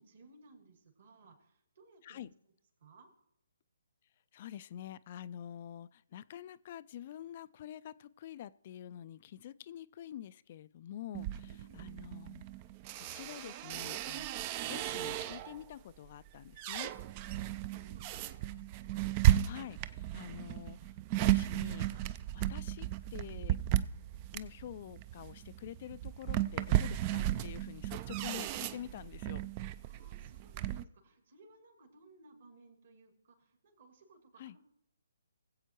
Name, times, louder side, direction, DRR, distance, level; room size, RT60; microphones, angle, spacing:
voice 1, 0.0-2.3 2.8-3.1 11.4-12.0 17.2-19.0 29.8-34.7, right 2 dB, 60° right, 2 dB, 2.8 m, -61 dB
voice 2, 4.3-12.4 13.1-16.9 19.4-20.9 21.2-22.0 22.3-23.6 24.3-29.4 34.4-34.6, left 11 dB, 40° left, 16 dB, 0.3 m, -47 dB
sound 1, 11.1-15.6 16.1-30.8, right 13 dB, 30° right, 0.4 m, -34 dB
20.5 x 7.9 x 3.0 m, 0.76 s
figure-of-eight pair, 140°, 0 cm